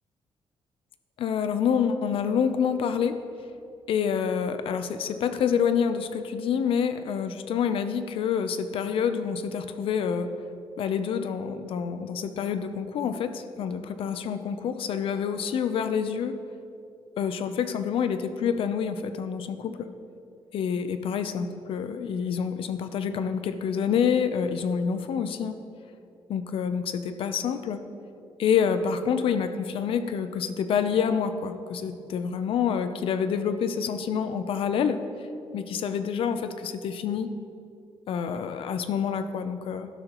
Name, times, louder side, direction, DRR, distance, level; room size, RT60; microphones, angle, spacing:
voice 1, 1.2-3.2 3.9-10.3 10.8-16.4 17.2-19.9 20.5-25.6 26.3-27.8 28.4-35.0 35.5-37.3 38.1-39.9, left 7 dB, 65° left, 10 dB, 0.6 m, -27 dB
12.0 x 12.0 x 3.0 m, 2.5 s
wide cardioid pair, 175°, 10 cm